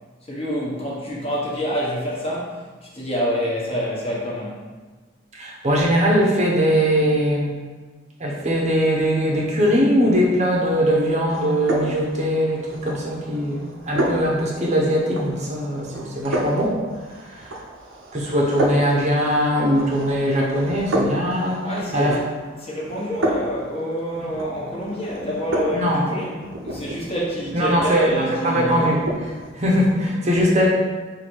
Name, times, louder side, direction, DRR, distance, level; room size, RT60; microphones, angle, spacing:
voice 1, 0.2-4.6 21.6-22.2 22.6-26.4 26.6-28.9, equal, 30° left, -5 dB, 1.1 m, -27 dB
voice 2, 5.3-7.5 8.2-16.8 17.3-17.5 18.1-21.6 21.9-22.2 25.7-26.0 27.5-29.0 29.5-30.7, equal, 35° right, -2 dB, 0.7 m, -20 dB
sound 1, 11.3-29.5, right 1 dB, 90° right, 0.7 m, -31 dB
4.3 x 2.7 x 4.4 m, 1.3 s
head